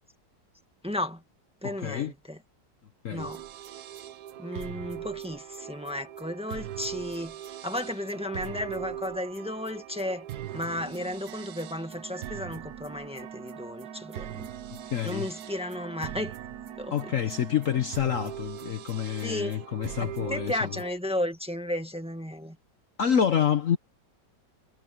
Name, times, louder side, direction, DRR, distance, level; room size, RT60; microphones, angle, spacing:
voice 1, 0.8-1.2 1.6-2.4 3.1-3.4 4.4-10.3 10.5-14.5 15.0-16.3 16.8-17.1 19.2-19.6 20.0-22.6, left 1 dB, 5° right, 1.6 m, -34 dB
voice 2, 1.6-2.1 3.0-3.3 14.9-15.3 16.9-20.7 23.0-23.8, left 8 dB, 55° left, 1.2 m, -27 dB
sound 1, 3.2-20.9, right 11 dB, 65° right, 1.3 m, -41 dB
omnidirectional pair, 1.9 m